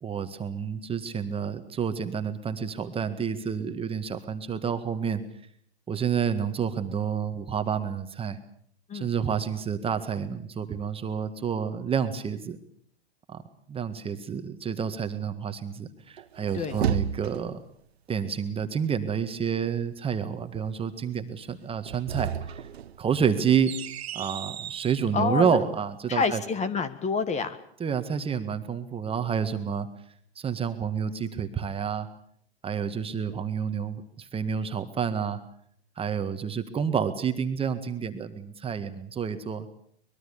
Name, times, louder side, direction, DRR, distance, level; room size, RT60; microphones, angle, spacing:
voice 1, 0.0-5.2 5.9-8.4 8.9-12.6 13.3-13.4 13.7-17.6 18.1-22.6 23.0-23.7 24.1-26.4 27.8-29.9 30.4-32.1 32.6-35.4 36.0-39.7, right 7 dB, 15° right, 9 dB, 1.7 m, -29 dB
sound 1, 16.2-17.7 21.7-25.0, right 9 dB, 75° right, 1.2 m, -33 dB
voice 2, 25.1-25.6 26.1-27.6, left 5 dB, 20° left, 14 dB, 1.6 m, -27 dB
24.0 x 21.0 x 7.1 m, 0.63 s
hypercardioid pair, 115°, 31 cm